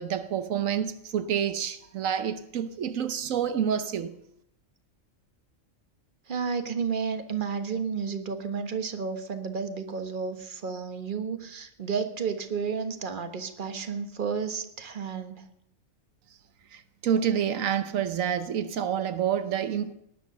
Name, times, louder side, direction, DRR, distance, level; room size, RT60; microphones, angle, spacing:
voice 1, 0.0-4.2 16.7-19.9, right 8 dB, 85° right, 1.2 m, -28 dB
voice 2, 6.3-15.4, right 6 dB, 40° right, 1.4 m, -32 dB
18.5 x 10.5 x 6.7 m
omnidirectional pair, 1.4 m